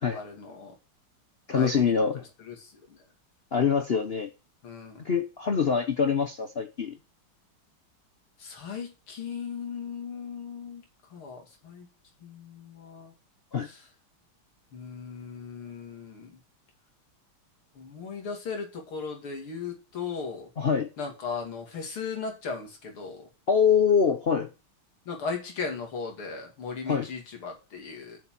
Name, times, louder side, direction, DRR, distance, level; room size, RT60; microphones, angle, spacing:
voice 1, 0.1-0.7 1.5-1.9 4.6-5.0 8.4-10.8 11.1-11.9 12.2-13.1 14.7-16.3 17.8-20.5 21.0-23.3 25.1-28.2, left 5 dB, 90° left, 3.3 m, -37 dB
voice 2, 1.5-2.3 3.5-4.3 5.0-7.0 13.5-13.7 20.6-20.9 23.5-24.5 26.9-27.1, left 6 dB, 70° left, 0.5 m, -24 dB
7.4 x 6.7 x 7.5 m
omnidirectional pair, 2.3 m